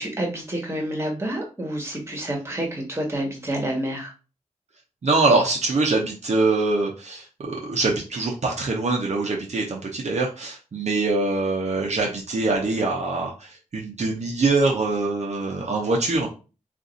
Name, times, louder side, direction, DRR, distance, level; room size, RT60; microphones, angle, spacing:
voice 1, 0.0-4.1, right 1 dB, 20° right, 1 dB, 1.2 m, -28 dB
voice 2, 5.0-16.3, right 3 dB, 60° right, -1 dB, 0.7 m, -23 dB
2.6 x 2.5 x 3.9 m, 0.32 s
wide cardioid pair, 85°, 13 cm